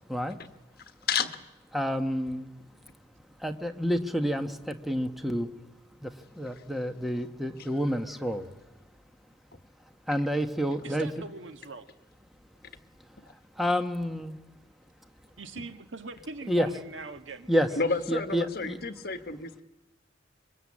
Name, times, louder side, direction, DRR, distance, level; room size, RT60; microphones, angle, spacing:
voice 1, 1.1-1.4 13.2-13.3 17.8-19.6, left 5 dB, 55° left, 8 dB, 1.5 m, -30 dB
voice 2, 1.7-2.5 3.4-5.5 6.0-8.5 10.1-11.1 13.3-14.3 16.5-16.7 17.5-17.7 18.1-18.8, equal, ahead, 6 dB, 1.4 m, -29 dB
voice 3, 10.8-11.9 15.4-17.9, right 3 dB, 85° right, 8 dB, 1.6 m, -42 dB
26.0 x 23.0 x 8.7 m, 1.0 s
head